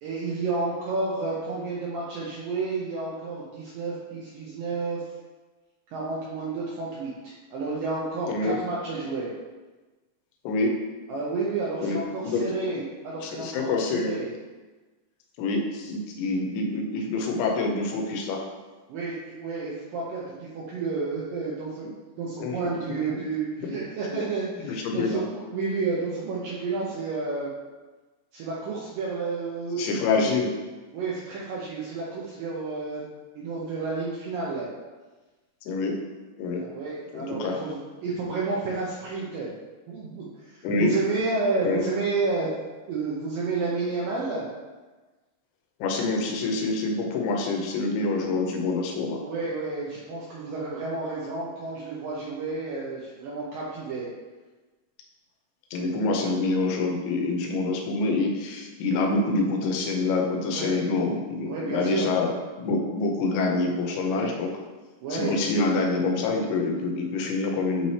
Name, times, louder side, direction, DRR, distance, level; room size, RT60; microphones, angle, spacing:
voice 1, 0.0-5.0 5.9-9.3 11.1-14.3 18.9-21.9 22.2-27.5 28.3-30.0 30.9-33.1 33.4-34.7 36.5-39.5 39.9-42.6 42.9-44.5 49.2-54.1 60.5-60.8 61.4-62.1 64.1-64.4 65.0-65.3, right 3 dB, 85° right, -5 dB, 2.0 m, -31 dB
voice 2, 8.3-8.6 10.4-10.8 11.8-12.0 12.2-12.8 13.2-14.1 15.4-18.4 22.4-22.5 23.7-23.8 24.1-24.2 24.6-25.2 29.8-30.5 35.7-36.0 36.4-36.6 37.1-37.6 40.6-40.9 41.6-41.9 45.8-49.2 55.7-62.3 62.6-64.5 65.1-67.9, left 3 dB, 85° left, 1 dB, 3.1 m, -26 dB
8.7 x 3.3 x 4.1 m, 1.3 s
omnidirectional pair, 5.1 m